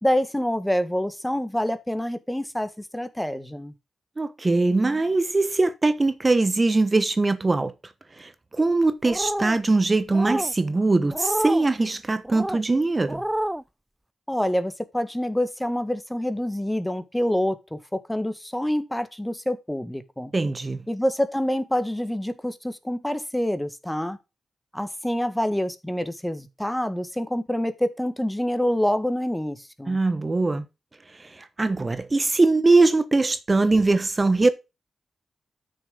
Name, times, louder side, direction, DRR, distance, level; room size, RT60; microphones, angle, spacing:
voice 1, 0.0-3.7 14.3-20.3 20.9-24.2 24.7-30.0, left 1 dB, 10° left, 1.6 m, -26 dB
voice 2, 4.2-7.7 8.2-13.2 20.3-20.8 29.9-30.6 31.2-34.5, right 3 dB, 35° right, 1.0 m, -21 dB
sound 1, 9.0-9.6 10.1-10.5 11.1-11.7 12.2-12.6 13.1-13.6, right 1 dB, 10° right, 0.5 m, -28 dB
8.5 x 6.7 x 3.8 m
supercardioid pair, 40°, 0 cm